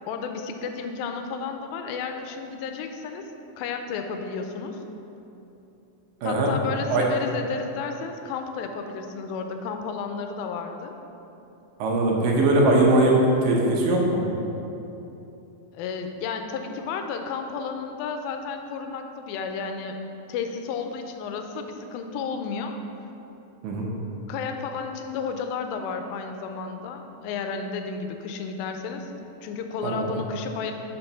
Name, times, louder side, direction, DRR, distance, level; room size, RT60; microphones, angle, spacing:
voice 1, 0.1-3.3 3.6-4.8 6.2-11.0 15.7-20.0 20.3-22.8 24.3-30.7, left 5 dB, 90° left, 5 dB, 2.3 m, -32 dB
voice 2, 11.8-13.2 13.4-14.2 23.6-23.9 29.8-30.1, right 2 dB, 75° right, -1 dB, 2.5 m, -21 dB
5.9 x 4.4 x 5.5 m, 3.0 s
omnidirectional pair, 4.1 m